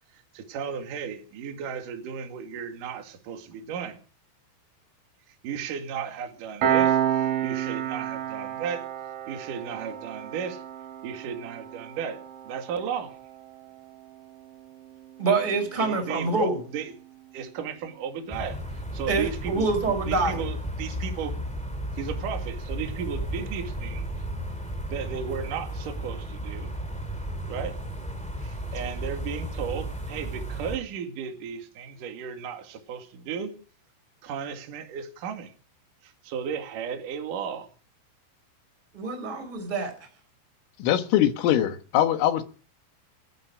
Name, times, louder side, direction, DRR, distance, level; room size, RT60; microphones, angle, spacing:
voice 1, 0.3-4.0 5.3-8.9 9.3-10.6 11.0-13.1 15.8-16.9 17.3-21.3 21.9-24.1 24.9-26.7 27.5-27.8 28.4-33.6 34.2-35.5 36.0-37.7, right 7 dB, 50° right, 3.1 m, -35 dB
Piano, 6.6-17.7, right 10 dB, 80° right, 6.1 m, -31 dB
voice 2, 15.2-16.6 19.1-20.4 38.9-39.9, right 3 dB, 10° right, 4.4 m, -26 dB
sound 1, 18.3-30.8, right 1 dB, 10° left, 0.4 m, -34 dB
voice 3, 40.8-42.4, left 11 dB, 80° left, 3.9 m, -22 dB
29.0 x 9.7 x 5.2 m
omnidirectional pair, 5.8 m